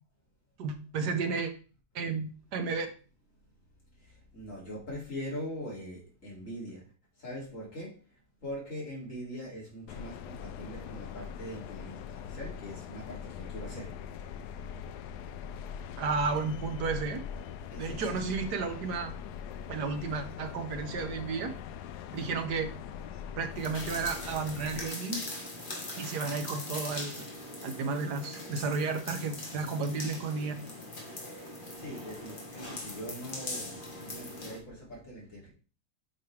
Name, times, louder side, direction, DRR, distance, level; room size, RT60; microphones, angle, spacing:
voice 1, 0.6-1.5 1.9-2.9 16.0-17.2 17.8-19.1 19.7-21.5 22.1-22.7 23.4-25.2 26.0-27.3 27.6-30.5, right 4 dB, 80° right, 1.6 m, -32 dB
voice 2, 4.0-14.3 17.7-18.3 31.7-35.5, equal, 50° left, 3.1 m, -42 dB
sound 1, 9.9-24.9, left 8 dB, 80° left, 1.1 m, -42 dB
sound 2, 23.5-34.6, left 2 dB, 30° left, 1.6 m, -41 dB
8.3 x 5.2 x 3.3 m
omnidirectional pair, 1.7 m